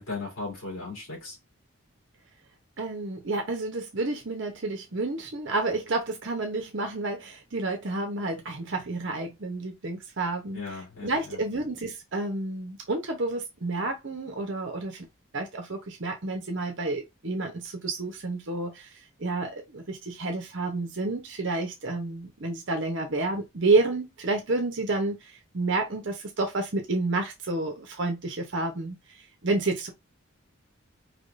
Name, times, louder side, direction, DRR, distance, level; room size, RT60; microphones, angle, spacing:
voice 1, 0.0-1.4 10.5-11.4, left 3 dB, 75° left, 2.8 m, -37 dB
voice 2, 2.8-10.6 11.0-15.1 15.3-29.9, right 2 dB, 55° right, 0.8 m, -30 dB
4.9 x 3.5 x 2.5 m
head